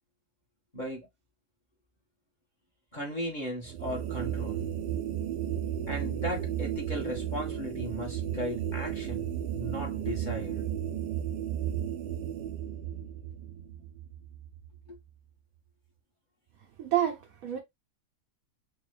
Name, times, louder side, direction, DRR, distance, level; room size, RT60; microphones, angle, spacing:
voice 1, 0.7-1.1 2.9-4.6 5.9-10.6 14.9-15.0, left 1 dB, 30° left, 1.3 m, -37 dB
sound 1, 3.6-15.0, right 10 dB, 90° right, 1.3 m, -34 dB
voice 2, 16.8-17.6, right 12 dB, 65° right, 1.1 m, -29 dB
3.4 x 3.1 x 3.2 m
omnidirectional pair, 1.7 m